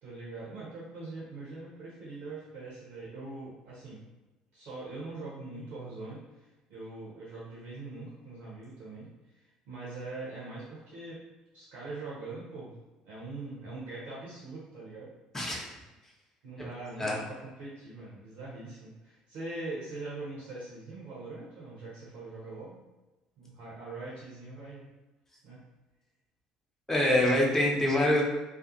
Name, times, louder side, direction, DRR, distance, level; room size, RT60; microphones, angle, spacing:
voice 1, 0.0-4.0 4.5-9.1 9.3-11.2 11.5-12.7 13.0-15.1 16.4-22.8 23.4-24.9 25.4-25.6, right 2 dB, 60° right, -7 dB, 0.7 m, -42 dB
voice 2, 15.3-15.7 17.0-17.2 26.9-28.2, left 1 dB, 10° left, -3 dB, 0.8 m, -25 dB
2.5 x 2.4 x 2.5 m, 1.1 s
figure-of-eight pair, 55°, 3 cm